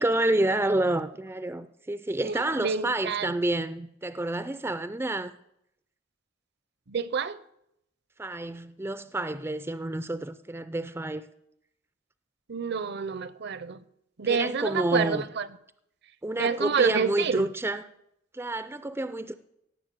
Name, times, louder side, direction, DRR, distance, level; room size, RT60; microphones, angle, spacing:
voice 1, 0.0-5.3 8.2-11.3 14.2-15.2 16.2-17.9 18.3-19.3, right 1 dB, 10° right, 0.4 m, -29 dB
voice 2, 2.2-3.3 6.9-7.4 12.5-13.8 14.2-15.5 16.4-17.5, right 6 dB, 55° right, 0.6 m, -28 dB
17.0 x 6.9 x 7.5 m
head